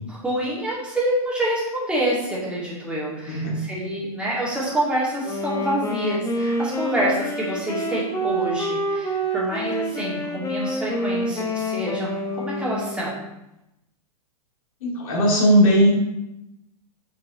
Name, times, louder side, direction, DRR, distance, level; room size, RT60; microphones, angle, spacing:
voice 1, 0.2-13.1, right 1 dB, 5° right, -7 dB, 2.3 m, -27 dB
voice 2, 3.3-3.6 14.8-15.9, equal, 60° left, -3 dB, 2.5 m, -18 dB
Wind instrument woodwind instrument, 5.2-13.3, equal, 15° left, 0.8 m, -27 dB
7.5 x 5.3 x 3.2 m, 0.89 s
figure-of-eight pair, 105°, 20 cm